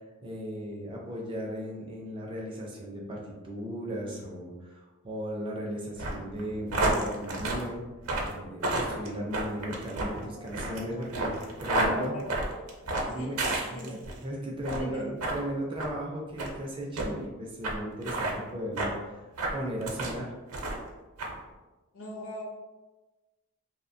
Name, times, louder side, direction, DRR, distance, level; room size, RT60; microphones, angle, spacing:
voice 1, 0.2-7.8 8.2-12.1 13.1-13.4 13.7-13.9 14.2-19.3 19.5-20.3, equal, 25° right, -1 dB, 0.4 m, -36 dB
sound 1, 6.0-14.2 14.6-14.9 15.2-15.4 15.8-15.9 16.4-16.5 17.0-17.1 17.6-17.7 18.0-18.3 18.8-18.9 19.4-20.2 20.5-20.9 21.2-21.3, right 2 dB, 70° right, 0.6 m, -30 dB
voice 2, 10.2-11.0 11.7-12.6 13.1-13.4 13.7-14.0 14.7-15.0 21.9-22.4, left 1 dB, 60° left, -1 dB, 0.6 m, -41 dB
2.9 x 2.1 x 2.5 m, 1.2 s
head